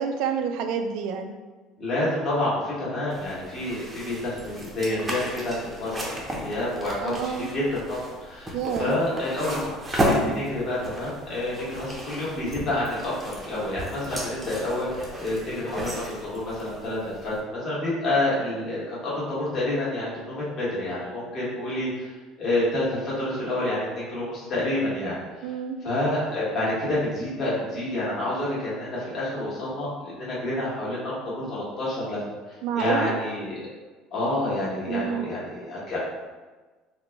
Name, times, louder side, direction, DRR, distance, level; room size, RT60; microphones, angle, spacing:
voice 1, 0.0-1.3 7.0-7.5 8.5-9.0 25.4-25.8 32.6-33.2 34.9-35.3, right 7 dB, 70° right, 6 dB, 0.4 m, -28 dB
voice 2, 1.8-7.6 7.9-9.6 10.1-25.5 25.8-32.2 32.5-33.6 34.1-36.0, left 1 dB, 40° left, -7 dB, 1.4 m, -28 dB
sound 1, 3.1-17.4, equal, 15° right, 0.6 m, -33 dB
3.8 x 2.2 x 3.4 m, 1.3 s
cardioid pair, 130°, 0 cm